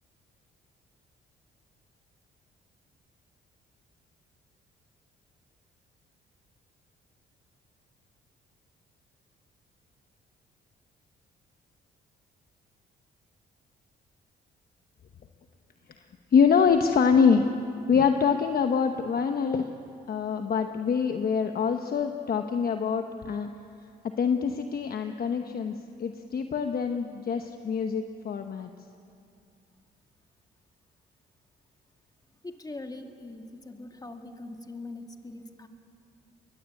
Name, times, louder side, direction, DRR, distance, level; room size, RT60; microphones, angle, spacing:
voice 1, 16.3-17.5 17.9-19.7 20.1-23.5 24.2-28.7, left 6 dB, 50° left, 6 dB, 1.1 m, -25 dB
voice 2, 32.4-35.7, left 2 dB, 20° left, 4 dB, 2.1 m, -42 dB
22.0 x 20.0 x 8.4 m, 2.5 s
cardioid pair, 90°, 20 cm